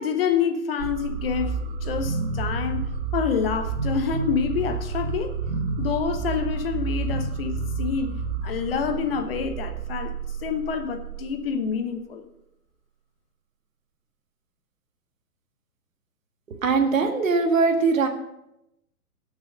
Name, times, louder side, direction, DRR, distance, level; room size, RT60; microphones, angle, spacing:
voice 1, 0.0-5.3 5.8-10.1 10.4-12.2, left 6 dB, 40° left, 8 dB, 1.0 m, -27 dB
sound 1, 0.8-11.7, right 4 dB, 40° right, 1.3 m, -30 dB
voice 2, 16.5-18.1, right 4 dB, 55° right, 5 dB, 1.8 m, -21 dB
17.0 x 6.4 x 5.2 m, 0.87 s
figure-of-eight pair, 125°, 46 cm